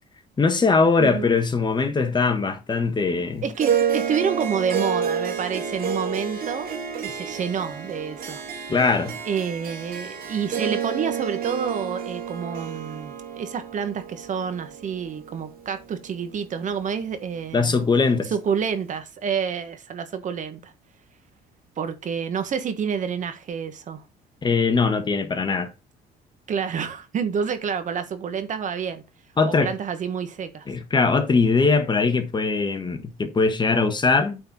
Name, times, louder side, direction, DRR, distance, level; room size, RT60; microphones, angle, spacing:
voice 1, 0.4-3.4 8.7-9.2 17.5-18.3 24.4-25.7 29.4-29.7 30.7-34.4, left 4 dB, 25° left, 1.4 m, -21 dB
voice 2, 1.0-1.3 3.4-6.7 7.0-8.4 9.2-17.8 18.3-20.7 21.8-24.0 26.5-29.0 29.4-30.7, right 7 dB, 50° right, 1.5 m, -28 dB
Harp, 3.6-16.1, right 7 dB, 65° right, 2.8 m, -30 dB
9.0 x 4.4 x 5.5 m
cardioid pair, 110°, 17 cm